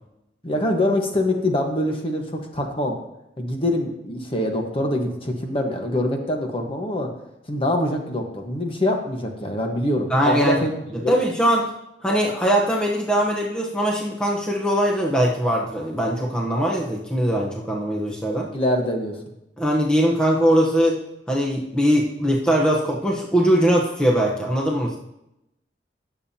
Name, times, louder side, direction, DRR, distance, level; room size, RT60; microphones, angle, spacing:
voice 1, 0.4-3.0 3.4-7.1 7.5-10.7 11.0-11.2 18.5-19.2, left 1 dB, 30° left, 3 dB, 1.2 m, -24 dB
voice 2, 10.1-10.7 11.1-11.7 12.0-18.5 19.6-21.0 21.3-25.0, equal, 5° left, -2 dB, 0.9 m, -21 dB
17.5 x 7.2 x 2.8 m, 0.87 s
head